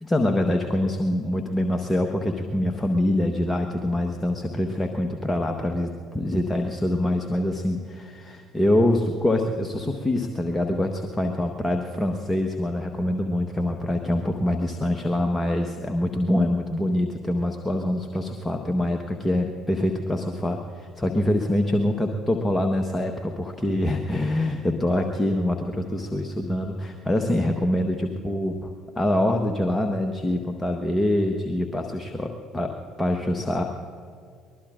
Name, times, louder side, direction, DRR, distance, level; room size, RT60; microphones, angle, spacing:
voice 1, 0.0-33.6, left 1 dB, 15° left, 3 dB, 1.2 m, -25 dB
24.0 x 20.5 x 2.5 m, 2.2 s
hypercardioid pair, 55°, 0 cm